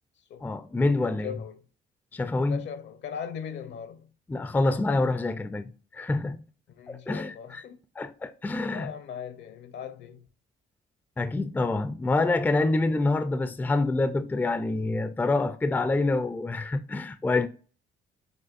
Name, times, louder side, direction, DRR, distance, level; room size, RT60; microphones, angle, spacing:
voice 1, 0.4-1.3 2.1-2.6 4.3-6.4 6.9-7.6 8.0-8.9 11.2-17.5, left 2 dB, 10° left, 0.3 m, -26 dB
voice 2, 1.2-1.6 2.5-4.1 6.7-7.8 8.7-10.3, left 7 dB, 65° left, 0.7 m, -39 dB
6.2 x 2.5 x 2.5 m
cardioid pair, 90°, 20 cm